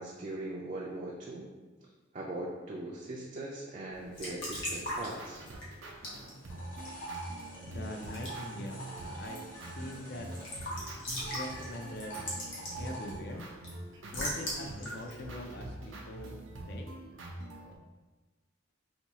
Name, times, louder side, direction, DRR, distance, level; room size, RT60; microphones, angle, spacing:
voice 1, 0.0-1.5 1.8-1.9 2.1-5.4, right 2 dB, 40° right, -3 dB, 0.4 m, -40 dB
Raindrop / Drip / Trickle dribble, 3.9-16.4, equal, 85° left, 1.1 m, -42 dB
sound 1, 4.2-17.8, right 1 dB, 85° right, 0.6 m, -45 dB
sound 2, 6.3-10.8 11.1-13.2, right 2 dB, 40° left, 0.9 m, -46 dB
voice 2, 7.6-9.5 9.8-10.3 11.3-12.2 12.8-13.5 14.1-16.9, left 1 dB, 55° left, 3 dB, 0.4 m, -43 dB
4.3 x 2.3 x 2.8 m, 1.2 s
head